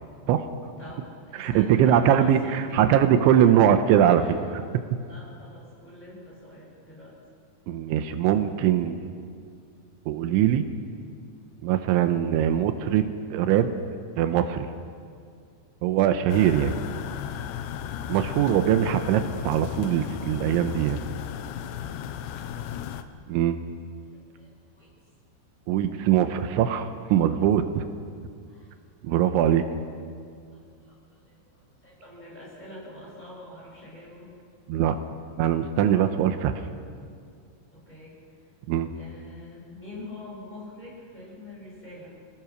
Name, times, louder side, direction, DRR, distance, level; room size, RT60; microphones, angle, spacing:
voice 1, 0.8-2.9 3.2-3.5 4.1-4.4 5.0-7.2 24.1-24.9 28.4-28.8 30.5-31.4 31.8-34.3 37.7-38.2 39.0-42.1, left 1 dB, 10° left, -5 dB, 6.9 m, -44 dB
voice 2, 1.4-4.2 4.5-4.6 7.7-9.1 10.1-10.6 11.6-13.7 14.2-14.7 15.8-16.8 18.1-21.0 23.3-23.6 25.7-27.8 29.0-29.6 34.7-35.0 35.4-36.6 38.7-38.9, right 10 dB, 85° right, 8 dB, 3.2 m, -22 dB
sound 1, 16.3-23.0, left 9 dB, 75° left, 3.0 m, -35 dB
28.5 x 17.5 x 6.3 m, 2.2 s
omnidirectional pair, 5.4 m